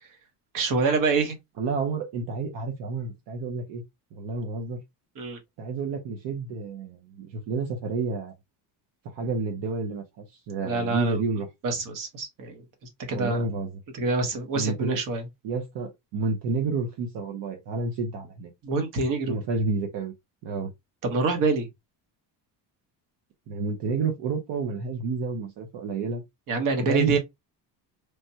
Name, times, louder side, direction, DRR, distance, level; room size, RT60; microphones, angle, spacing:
voice 1, 0.5-1.4 5.2-5.4 10.6-11.1 11.6-12.6 13.1-13.4 14.0-15.2 18.6-19.4 21.0-21.7 26.5-27.2, right 3 dB, 50° right, 1.0 m, -26 dB
voice 2, 1.6-3.8 4.1-4.8 5.6-8.3 9.2-11.5 13.1-13.8 14.6-15.0 15.4-18.5 19.3-20.1 20.4-20.7 23.5-26.2 26.8-27.2, right 4 dB, 70° right, 0.8 m, -30 dB
3.3 x 2.2 x 2.7 m
cardioid pair, 155°, 43 cm